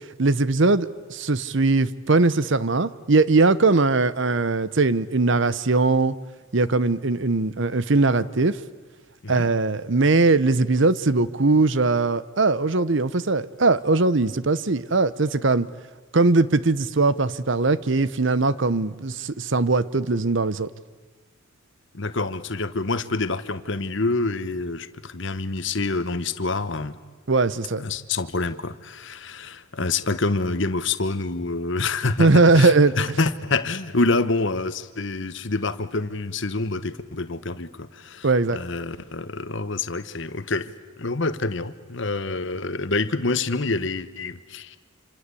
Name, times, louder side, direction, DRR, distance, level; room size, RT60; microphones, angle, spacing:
voice 1, 0.2-6.1 6.5-8.6 9.3-15.7 16.1-20.7 27.3-27.8 32.2-32.9 38.2-38.6, right 3 dB, 60° right, 17 dB, 0.8 m, -20 dB
voice 2, 21.9-27.0 27.8-40.7 41.0-44.8, left 3 dB, 60° left, 12 dB, 1.2 m, -27 dB
27.0 x 26.0 x 8.4 m, 1.3 s
head